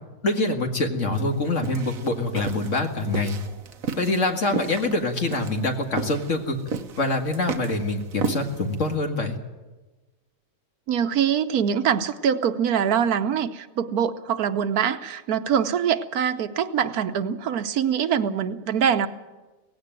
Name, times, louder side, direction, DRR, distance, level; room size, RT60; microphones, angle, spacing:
voice 1, 0.2-3.4 4.0-6.6 7.0-9.4, left 2 dB, 55° left, 4 dB, 2.3 m, -25 dB
sound 1, 1.1-8.9, right 5 dB, 70° right, 1.5 m, -34 dB
voice 2, 10.9-19.1, right 8 dB, 90° right, 11 dB, 1.4 m, -24 dB
17.5 x 16.5 x 9.0 m, 1.2 s
omnidirectional pair, 1.5 m